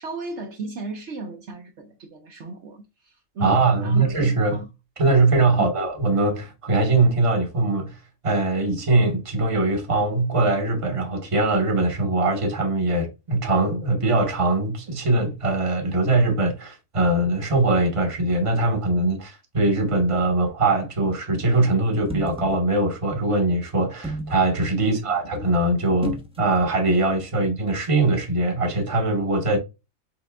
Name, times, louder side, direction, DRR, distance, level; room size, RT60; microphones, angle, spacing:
voice 1, 0.0-4.0 4.5-4.7 5.6-5.7 24.8-25.1, right 2 dB, 60° right, 1.1 m, -35 dB
voice 2, 3.4-4.6 5.0-8.0 8.2-29.6, right 2 dB, 25° right, 1.1 m, -22 dB
sound 1, 22.0-22.7 24.0-24.4 26.0-26.6 26.9-27.0, equal, 5° right, 0.6 m, -31 dB
5.9 x 3.7 x 2.3 m
omnidirectional pair, 1.4 m